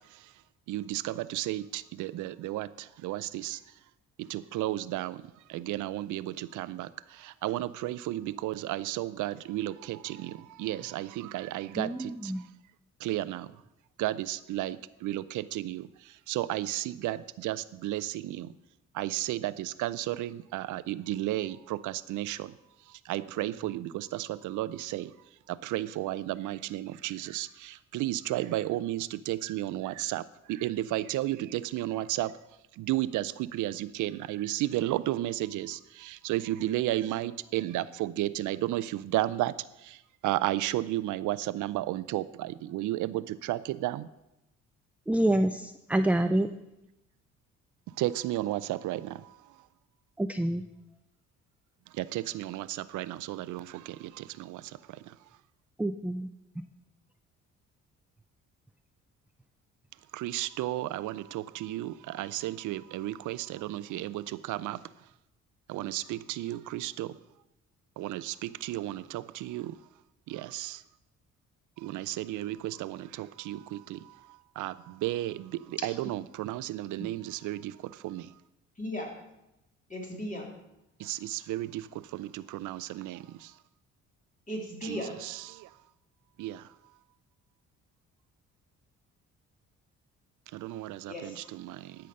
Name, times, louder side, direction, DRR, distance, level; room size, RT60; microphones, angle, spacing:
voice 1, 0.7-3.6 4.3-5.2 5.5-6.9 7.2-12.3 13.0-13.5 14.0-15.9 16.3-18.5 18.9-22.5 23.1-25.1 25.5-32.3 32.8-39.5 39.8-40.0 40.2-44.1 48.0-49.3 52.0-54.6 60.1-64.8 65.7-67.1 68.0-69.8 70.3-70.8 71.8-74.0 74.6-78.3 81.0-81.9 82.1-83.5 84.8-85.7 86.4-86.6 90.5-92.0, right 15 dB, 80° right, 16 dB, 0.5 m, -33 dB
voice 2, 11.8-12.4 45.1-46.5 50.2-50.6 55.8-56.3 77.0-77.1, right 1 dB, 5° right, 9 dB, 0.3 m, -27 dB
voice 3, 78.8-79.1 79.9-80.5 84.5-85.2 91.1-91.5, left 1 dB, 25° left, -1 dB, 3.2 m, -36 dB
12.0 x 5.6 x 6.4 m, 0.90 s
cardioid pair, 90°, 30 cm